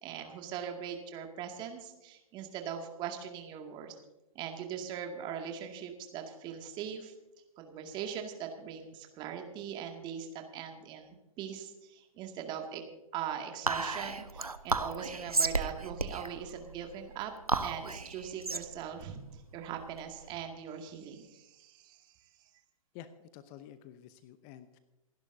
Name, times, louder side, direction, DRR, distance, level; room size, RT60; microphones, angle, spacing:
voice 1, 0.0-4.0 4.3-7.1 7.6-12.8 13.1-17.3 17.6-22.5, right 8 dB, 25° right, 4 dB, 2.1 m, -41 dB
Whispering, 13.7-20.3, right 3 dB, 85° right, 0.9 m, -34 dB
voice 2, 22.9-24.8, left 10 dB, 30° left, 12 dB, 0.8 m, -50 dB
28.0 x 11.0 x 2.7 m, 1.0 s
figure-of-eight pair, 115°, 18 cm